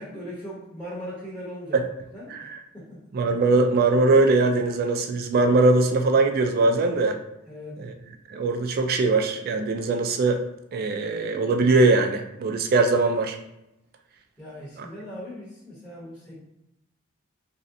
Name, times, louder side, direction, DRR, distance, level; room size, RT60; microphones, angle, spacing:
voice 1, 0.0-1.8 2.1-2.3 2.7-3.0 7.5-7.8 14.4-16.4, equal, 5° left, -9 dB, 0.7 m, -39 dB
voice 2, 3.1-7.2 7.8-7.9 8.3-10.4 10.7-13.4 14.8-14.9, right 3 dB, 45° right, 5 dB, 0.3 m, -21 dB
3.1 x 2.7 x 2.5 m, 0.85 s
head